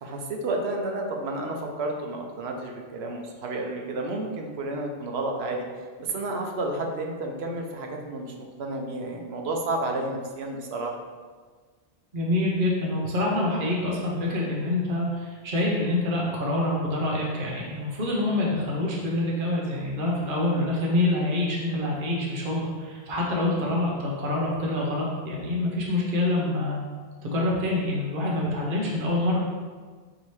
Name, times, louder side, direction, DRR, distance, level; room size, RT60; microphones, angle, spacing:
voice 1, 0.0-5.7 6.0-8.3 8.6-11.0, right 2 dB, 90° right, 2 dB, 0.9 m, -31 dB
voice 2, 12.1-26.8 27.2-29.4, left 1 dB, 60° right, -3 dB, 1.0 m, -26 dB
5.1 x 2.8 x 3.1 m, 1.5 s
omnidirectional pair, 1.1 m